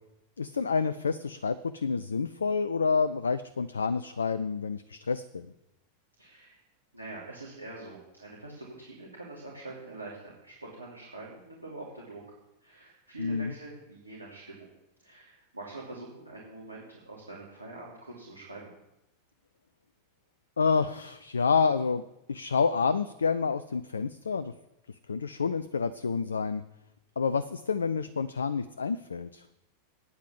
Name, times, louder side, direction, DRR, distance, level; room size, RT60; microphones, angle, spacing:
voice 1, 0.4-5.5 13.2-13.5 20.6-22.0 22.3-24.5 25.1-26.6 27.2-29.4, left 5 dB, 70° left, 14 dB, 0.4 m, -28 dB
voice 2, 6.2-6.6 6.9-12.2 12.6-14.7 15.0-18.8, right 2 dB, 80° right, -5 dB, 2.8 m, -44 dB
9.4 x 8.1 x 7.4 m, 0.90 s
figure-of-eight pair, 90°, 0 cm